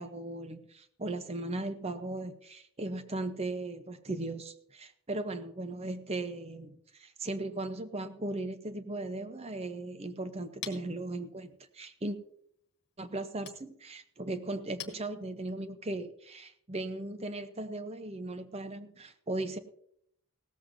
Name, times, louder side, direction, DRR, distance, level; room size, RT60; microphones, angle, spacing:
voice 1, 0.0-12.2 13.0-19.6, right 2 dB, 30° right, 10 dB, 0.7 m, -37 dB
Chink clink, 10.0-15.7, left 9 dB, 50° left, 1.4 m, -50 dB
17.0 x 14.0 x 2.6 m, 0.69 s
head